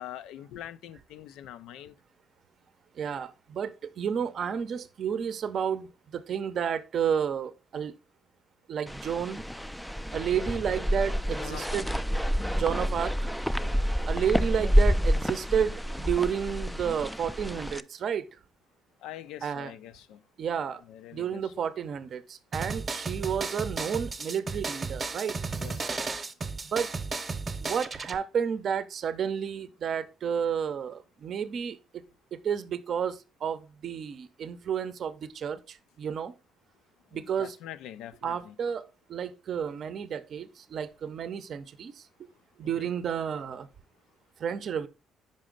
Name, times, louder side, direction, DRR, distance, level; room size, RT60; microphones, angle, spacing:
voice 1, 0.0-1.9 11.4-11.9 13.6-13.9 19.0-20.2 20.9-21.5 25.6-26.0 37.1-38.5 42.8-42.9, left 11 dB, 85° left, 0.4 m, -44 dB
voice 2, 2.9-7.9 8.7-9.4 10.1-12.0 12.5-13.3 14.1-18.3 19.4-19.7 20.4-20.8 21.1-25.4 26.6-26.9 27.6-32.0 32.3-36.3 37.1-37.6 38.2-42.3 42.6-43.7 44.4-44.9, right 7 dB, 60° right, 0.6 m, -31 dB
sound 1, 8.9-17.8, equal, 5° left, 0.3 m, -28 dB
sound 2, 22.5-28.2, right 4 dB, 30° right, 0.8 m, -34 dB
5.3 x 5.0 x 3.8 m
cardioid pair, 85°, 0 cm